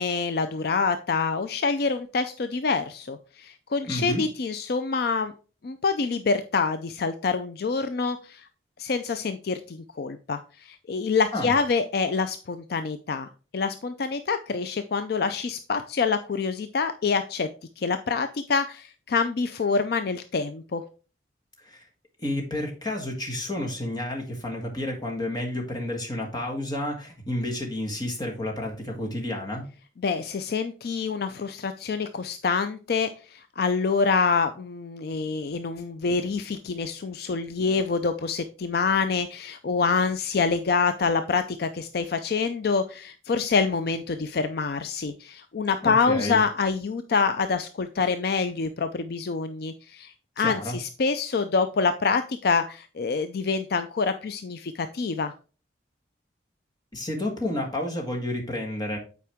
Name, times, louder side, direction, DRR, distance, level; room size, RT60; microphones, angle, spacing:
voice 1, 0.0-5.3 5.6-8.5 8.8-17.5 17.8-20.8 30.0-55.3, left 4 dB, 55° left, 10 dB, 0.4 m, -26 dB
voice 2, 3.9-4.2 11.3-11.5 21.6-21.8 22.2-29.7 45.8-46.4 50.4-50.8 56.9-59.0, left 1 dB, 20° left, 1 dB, 1.6 m, -30 dB
8.4 x 4.6 x 3.5 m, 0.36 s
head